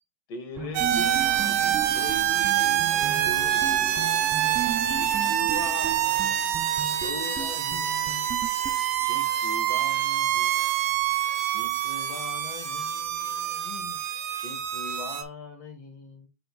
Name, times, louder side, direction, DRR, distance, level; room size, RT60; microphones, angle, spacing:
voice 1, 0.3-4.2 4.8-6.5 7.0-8.4 9.0-10.8 11.4-14.0 14.3-16.3, left 2 dB, 45° left, 5 dB, 1.9 m, -41 dB
sound 1, 0.5-9.4, right 6 dB, 20° right, 0.5 m, -37 dB
sound 2, 0.7-15.2, right 11 dB, 70° right, 1.7 m, -26 dB
6.6 x 6.4 x 2.5 m, 0.25 s
supercardioid pair, 145°, 9 cm